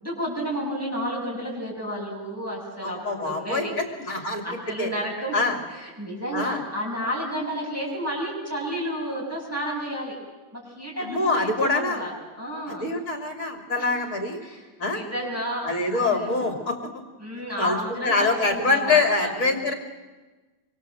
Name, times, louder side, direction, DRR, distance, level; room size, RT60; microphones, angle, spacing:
voice 1, 0.0-3.7 4.1-10.2 10.5-12.1 12.4-12.8 13.8-14.1 14.4-16.6 17.2-19.4, equal, 10° right, -4 dB, 7.5 m, -31 dB
voice 2, 2.8-3.6 4.0-4.9 5.3-5.6 6.3-6.6 11.0-12.0 12.7-14.4 14.8-15.0 15.6-16.8 17.6-17.8 18.0-19.7, left 3 dB, 55° left, 4 dB, 3.0 m, -24 dB
25.0 x 25.0 x 7.7 m, 1.2 s
omnidirectional pair, 1.7 m